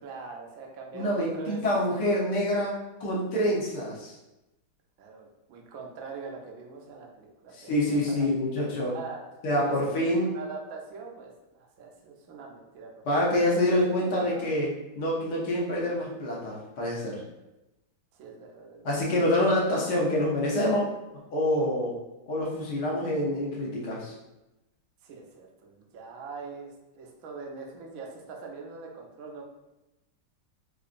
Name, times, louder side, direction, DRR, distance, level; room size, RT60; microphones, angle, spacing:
voice 1, 0.0-1.6 5.0-8.3 8.9-9.2 9.6-13.4 13.9-14.6 18.1-19.4 25.0-29.4, right 4 dB, 65° right, 0 dB, 0.9 m, -43 dB
voice 2, 0.9-4.1 7.5-9.0 9.4-10.3 13.0-17.2 18.8-20.9 21.3-22.0 22.3-24.1, left 1 dB, 65° left, -4 dB, 1.4 m, -26 dB
4.8 x 2.5 x 2.5 m, 0.97 s
omnidirectional pair, 2.0 m